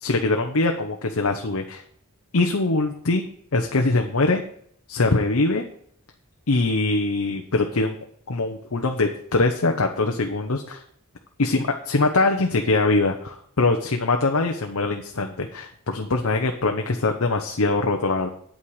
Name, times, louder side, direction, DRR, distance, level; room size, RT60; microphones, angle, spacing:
voice 1, 0.0-1.8 2.3-3.2 3.5-4.4 4.9-5.6 6.5-7.9 8.3-10.8 11.4-18.3, left 3 dB, 75° left, 4 dB, 0.9 m, -22 dB
8.8 x 8.7 x 4.8 m, 0.64 s
head